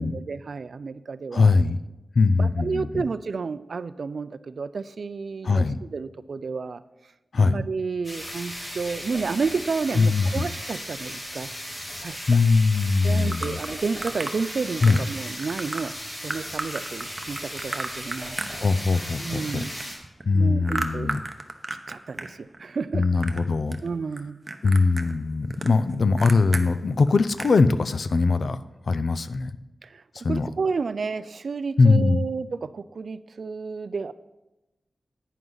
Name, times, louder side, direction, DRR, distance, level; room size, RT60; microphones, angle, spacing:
voice 1, 0.0-1.5 2.4-6.8 7.3-11.5 12.0-12.4 13.0-18.7 19.2-19.7 20.3-21.1 21.9-23.0 23.8-24.4 29.8-34.1, right 4 dB, 65° right, 14 dB, 0.4 m, -31 dB
voice 2, 1.3-1.8 2.2-3.0 5.4-5.8 7.3-7.6 9.9-10.5 12.3-13.6 14.8-15.0 18.6-19.6 20.3-21.2 22.9-23.8 24.6-28.6 28.9-29.5 30.1-30.5 31.8-32.2, left 4 dB, 65° left, 13 dB, 0.5 m, -21 dB
sound 1, 8.0-20.0, equal, 20° left, 3.8 m, -36 dB
sound 2, 13.3-14.4 14.8-15.1 15.4-15.8 16.3-19.1 19.3-22.3 22.5-23.4 23.7-24.2 24.5-26.6 27.0-27.1 27.4-27.6, right 2 dB, 35° right, 0.8 m, -33 dB
11.0 x 9.3 x 3.9 m, 1.0 s
wide cardioid pair, 105°, 0 cm